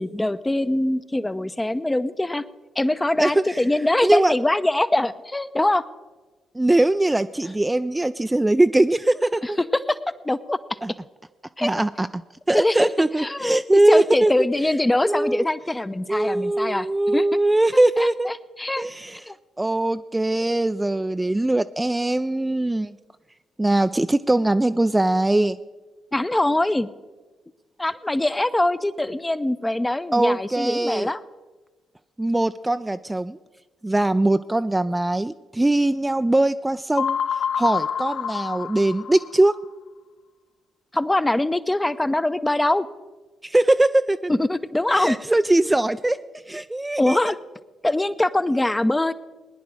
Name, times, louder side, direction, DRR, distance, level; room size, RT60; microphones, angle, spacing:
voice 1, 0.0-2.4 2.8-5.9 9.4-10.0 10.2-10.6 11.6-11.7 12.5-12.9 13.2-17.2 18.0-18.9 19.3-19.4 26.1-26.9 27.8-31.2 40.9-42.9 44.3-45.2 47.0-47.4 47.8-49.1, left 1 dB, 15° left, 15 dB, 0.7 m, -23 dB
voice 2, 3.2-3.6 4.0-4.3 6.6-9.6 10.8-10.9 11.6-12.2 12.5-14.3 15.0-15.5 16.1-18.3 18.8-19.2 19.6-23.0 23.6-25.6 30.1-31.1 32.2-33.4 33.8-37.2 37.6-39.6 43.4-44.3 45.0-46.2 46.5-47.2, right 2 dB, 15° right, 11 dB, 0.4 m, -21 dB
sound 1, 37.0-39.6, left 8 dB, 60° left, 0.4 m, -27 dB
19.5 x 10.5 x 4.9 m, 1.2 s
hypercardioid pair, 40°, 0 cm